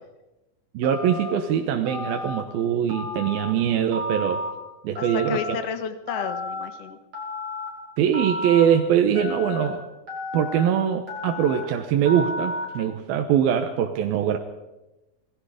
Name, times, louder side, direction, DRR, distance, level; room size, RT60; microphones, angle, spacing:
voice 1, 0.7-4.4 4.8-5.6 8.0-9.8 10.3-14.4, right 9 dB, 80° right, 5 dB, 2.9 m, -22 dB
Telephone, 0.8-1.3 1.9-2.4 2.9-3.5 3.9-4.5 5.0-5.5 6.1-6.7 7.1-7.7 8.1-8.6 9.2-9.7 10.1-10.6 11.1-11.6 12.1-12.6, left 2 dB, 40° right, 7.0 m, -32 dB
voice 2, 5.0-7.0, left 7 dB, 60° left, 9 dB, 1.8 m, -32 dB
27.0 x 19.5 x 5.0 m, 1.0 s
omnidirectional pair, 4.2 m